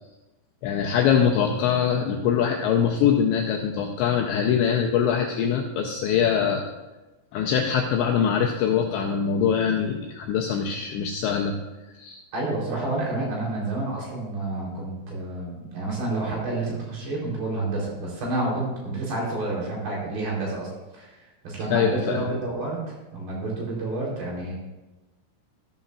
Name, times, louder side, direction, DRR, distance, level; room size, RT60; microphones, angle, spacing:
voice 1, 0.6-6.6 7.3-11.6 12.0-12.2 21.7-22.3, left 7 dB, 80° left, 1 dB, 2.6 m, -23 dB
voice 2, 12.3-20.7 20.9-22.8 23.1-24.5, right 2 dB, 55° right, -4 dB, 5.2 m, -29 dB
13.5 x 13.0 x 2.4 m, 1.1 s
omnidirectional pair, 5.8 m